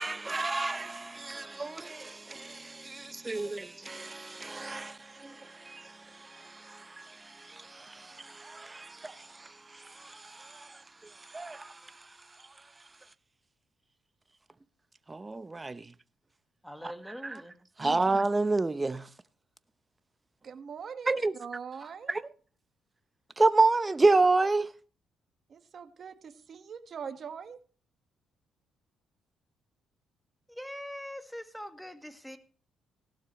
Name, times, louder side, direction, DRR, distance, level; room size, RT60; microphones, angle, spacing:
voice 1, 0.0-12.5 15.1-15.9 16.8-16.9 17.2-17.4 17.8-19.1 21.1-21.3 22.1-22.2 23.4-24.7, right 3 dB, 20° right, 0.8 m, -30 dB
voice 2, 16.6-17.5 30.5-32.4, equal, ahead, 1.6 m, -42 dB
voice 3, 20.4-21.1 21.4-22.1 25.5-27.6, right 6 dB, 50° right, 1.6 m, -42 dB
17.0 x 12.0 x 3.1 m
cardioid pair, 90°, 0 cm